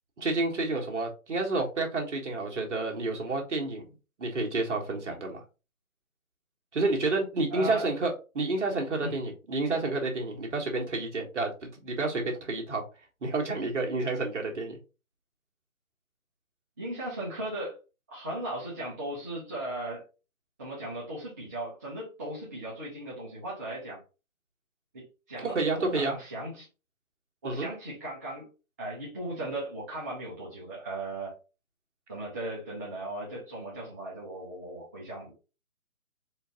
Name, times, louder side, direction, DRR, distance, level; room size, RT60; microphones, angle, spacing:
voice 1, 0.2-3.8 4.2-5.4 6.7-12.8 13.2-14.8 25.4-26.2 27.4-27.7, right 3 dB, 55° right, 1.6 m, -30 dB
voice 2, 7.5-7.9 9.0-9.1 16.8-17.8 18.1-20.0 20.6-24.0 24.9-26.7 27.4-28.5 28.8-31.3 32.1-35.3, right 1 dB, 10° right, 0.7 m, -37 dB
4.4 x 2.7 x 3.8 m
figure-of-eight pair, 150°, 43 cm